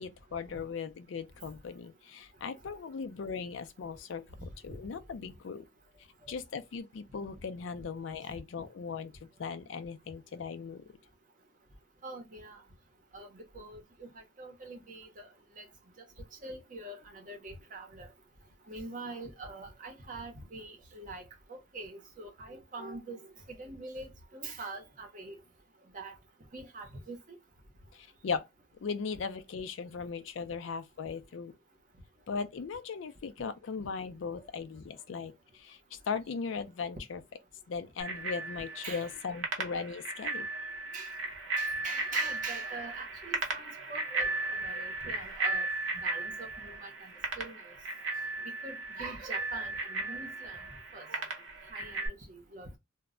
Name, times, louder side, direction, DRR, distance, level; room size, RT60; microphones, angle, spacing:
voice 1, 0.0-4.2 4.6-5.6 6.3-9.1 9.4-10.8 28.2-28.4 28.8-31.5 32.3-35.3 35.6-37.2 37.7-40.5, left 5 dB, 80° left, 0.4 m, -38 dB
voice 2, 12.0-12.6 13.1-15.3 15.6-15.7 16.4-18.1 18.7-21.2 21.5-23.2 23.5-25.4 25.9-26.1 26.5-27.4 38.8-39.1 40.9-41.1 41.6-45.6 45.9-47.1 47.4-47.7 48.6-50.6 50.9-51.2 51.7-52.8, right 3 dB, 40° right, 0.7 m, -44 dB
Bicycle bell, 38.0-52.1, right 2 dB, 80° right, 0.8 m, -36 dB
2.2 x 2.0 x 3.6 m
head